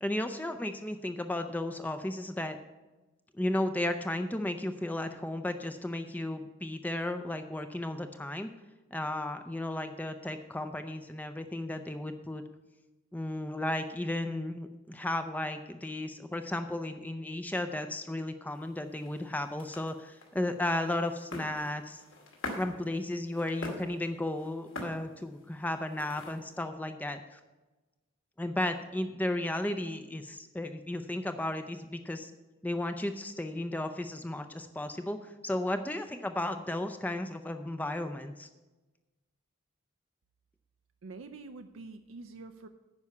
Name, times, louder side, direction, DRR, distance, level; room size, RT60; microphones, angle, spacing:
voice 1, 0.0-2.6 3.3-8.5 8.9-12.4 13.1-22.0 22.5-27.4 28.4-32.3 32.6-38.5, left 1 dB, 10° left, 8 dB, 0.4 m, -34 dB
sound 1, 18.5-26.6, left 2 dB, 75° left, 2.2 m, -45 dB
voice 2, 41.0-42.7, right 3 dB, 80° right, 7 dB, 0.5 m, -46 dB
9.6 x 5.6 x 8.3 m, 1.1 s
head